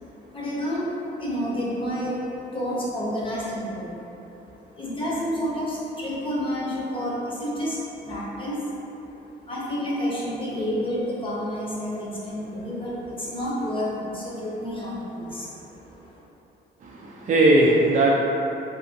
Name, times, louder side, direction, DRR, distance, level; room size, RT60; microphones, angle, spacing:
voice 1, 0.0-0.9 1.2-3.9 4.7-7.8 8.0-8.6 9.5-16.1, equal, 25° left, -6 dB, 0.8 m, -29 dB
voice 2, 16.8-18.1, right 1 dB, 40° right, -3 dB, 0.4 m, -19 dB
2.7 x 2.7 x 2.6 m, 3.0 s
cardioid pair, 90°, 20 cm